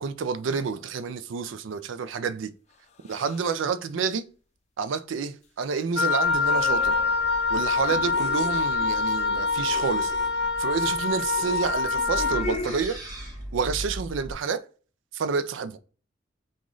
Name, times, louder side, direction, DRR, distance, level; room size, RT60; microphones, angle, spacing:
voice 1, 0.0-2.5 3.1-4.3 4.8-6.9 7.5-10.1 10.6-13.0 13.5-14.6 15.1-15.8, right 5 dB, 80° right, 0.4 m, -29 dB
sound 1, 0.6-0.9 3.0-3.6 6.2-9.8 11.6-12.8, left 2 dB, 35° left, 0.4 m, -39 dB
Wind instrument woodwind instrument, 6.0-12.5, left 4 dB, 55° left, 0.9 m, -25 dB
sound 2, 6.2-14.3, equal, 20° right, 1.3 m, -40 dB
3.0 x 2.5 x 3.6 m
head